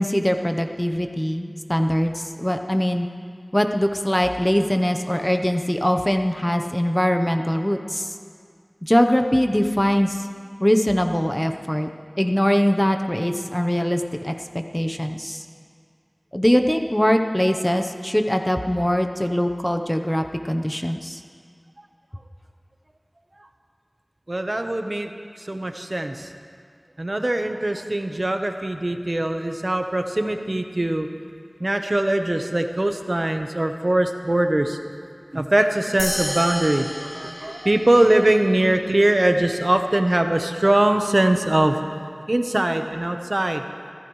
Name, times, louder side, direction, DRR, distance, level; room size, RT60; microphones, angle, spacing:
voice 1, 0.0-3.1 3.5-8.1 8.9-10.3 10.6-11.9 12.2-14.3 14.7-15.4 16.3-21.2, equal, 15° left, 5 dB, 0.8 m, -22 dB
voice 2, 24.3-25.1 25.5-26.3 27.0-31.1 31.6-34.8 35.3-41.7 42.3-43.6, right 1 dB, 55° right, 5 dB, 1.0 m, -21 dB
sound 1, 36.0-38.7, left 1 dB, 70° left, 4.6 m, -32 dB
24.5 x 15.0 x 3.2 m, 2.2 s
wide cardioid pair, 40°, 0 cm